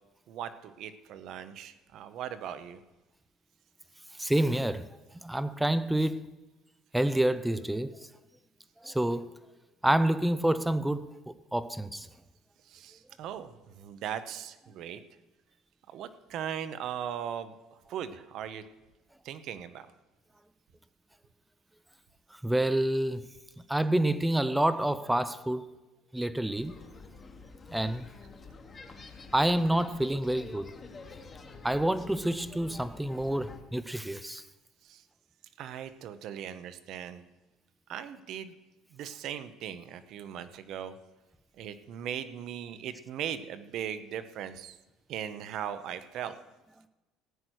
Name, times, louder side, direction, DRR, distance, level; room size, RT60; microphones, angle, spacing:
voice 1, 0.3-2.8 12.6-15.0 15.9-18.6 19.2-19.9 34.8-35.0 35.6-37.2 37.9-38.5 38.9-41.0 41.5-44.8 45.1-46.4, right 9 dB, 45° right, 0.9 m, -39 dB
voice 2, 4.2-4.9 5.2-6.3 6.9-8.0 8.8-9.3 9.8-12.1 22.4-23.2 23.7-25.6 26.1-26.7 27.7-28.1 29.3-30.7 31.6-34.4, right 1 dB, 5° right, 0.5 m, -28 dB
sound 1, 26.5-33.6, left 4 dB, 20° left, 1.2 m, -48 dB
16.0 x 9.5 x 6.3 m
cardioid pair, 175°, 0 cm